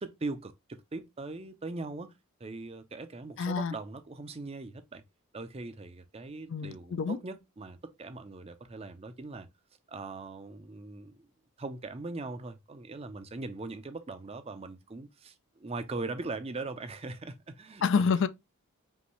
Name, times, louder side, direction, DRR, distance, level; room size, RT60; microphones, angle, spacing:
voice 1, 0.0-2.1 2.4-5.0 5.3-9.5 9.9-11.3 11.6-18.1, right 3 dB, 25° right, 0.5 m, -40 dB
voice 2, 3.4-3.7 6.5-7.2 17.8-18.3, left 5 dB, 55° left, 0.4 m, -27 dB
5.4 x 2.6 x 3.1 m
head